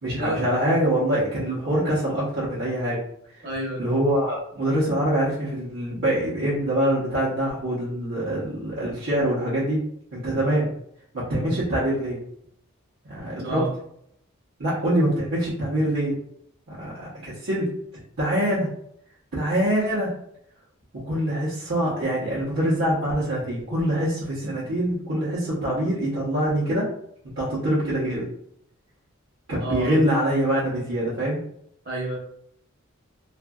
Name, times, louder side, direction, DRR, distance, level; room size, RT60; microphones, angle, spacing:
voice 1, 0.0-3.0 3.4-3.5 3.8-9.8 10.1-10.7 11.1-12.2 13.1-13.7 14.6-16.2 16.7-17.8 18.2-18.7 19.3-20.1 21.1-26.9 27.4-28.3 29.5-31.4, right 1 dB, 70° right, -9 dB, 0.9 m, -24 dB
voice 2, 3.4-3.9 11.4-11.6 13.4-13.7 29.6-30.0 31.8-32.2, right 2 dB, 45° right, -3 dB, 1.0 m, -29 dB
2.6 x 2.5 x 2.3 m, 0.70 s
head